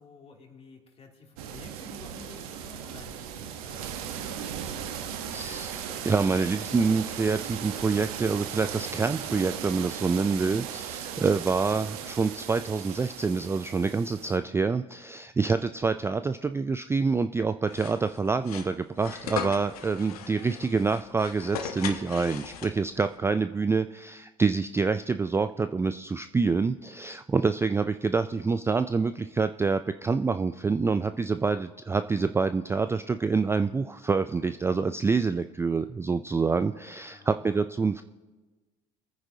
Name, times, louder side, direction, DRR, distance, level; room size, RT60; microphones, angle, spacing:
voice 1, 0.0-4.3 37.1-37.4, left 4 dB, 35° left, 1 dB, 2.7 m, -51 dB
sound 1, 1.4-14.4, right 8 dB, 80° right, 1.0 m, -37 dB
voice 2, 5.3-38.0, right 4 dB, 15° right, 11 dB, 0.3 m, -27 dB
sound 2, 17.7-23.0, left 8 dB, 90° left, 1.0 m, -38 dB
24.0 x 9.5 x 2.8 m, 1.2 s
hypercardioid pair, 80°, 19 cm